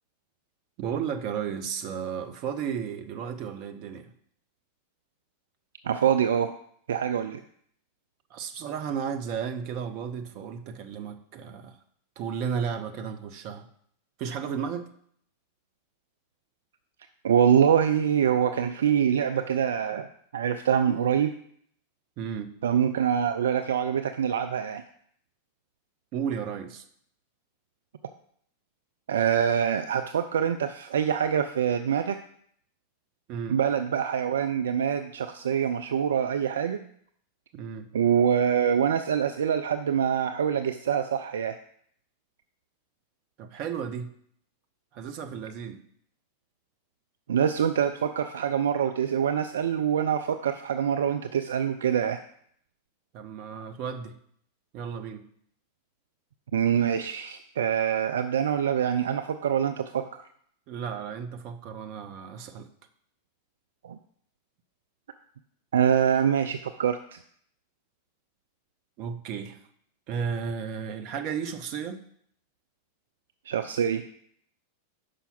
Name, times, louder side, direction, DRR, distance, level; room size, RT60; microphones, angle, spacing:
voice 1, 0.8-4.1 8.3-11.8 12.2-13.7 14.2-14.9 22.2-22.5 26.1-26.8 33.3-33.6 37.5-37.9 43.4-44.1 44.9-45.8 53.1-54.2 54.7-55.3 60.7-62.7 69.0-69.6 70.1-72.0, right 7 dB, 40° right, 8 dB, 0.7 m, -33 dB
voice 2, 5.9-6.5 6.9-7.4 17.2-20.1 20.3-21.3 22.6-24.8 29.1-32.2 33.5-36.8 37.9-41.6 47.3-52.2 56.5-60.2 63.8-64.0 65.7-67.2 73.5-74.0, right 8 dB, 65° right, 7 dB, 0.3 m, -25 dB
5.6 x 4.9 x 6.0 m, 0.66 s
figure-of-eight pair, 90°, 0 cm